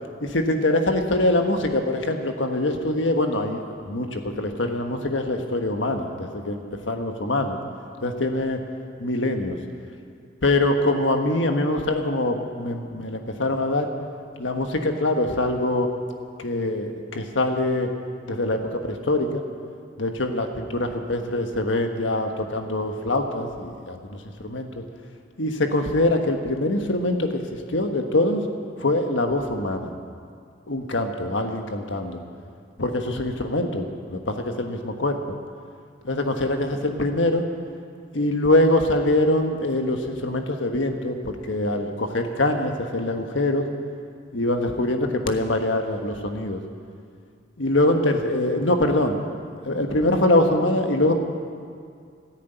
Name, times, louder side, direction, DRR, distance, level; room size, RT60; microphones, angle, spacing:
voice 1, 0.2-7.6 8.0-8.6 9.0-9.6 10.4-13.9 14.4-15.9 16.4-17.9 18.3-19.4 20.0-24.8 25.4-27.4 27.7-28.4 28.8-29.9 30.7-32.2 32.8-35.1 36.0-37.4 38.1-43.7 44.3-46.6 47.6-49.2 49.6-51.1, left 1 dB, 85° left, 5 dB, 1.4 m, -24 dB
13.0 x 11.0 x 9.2 m, 2.2 s
head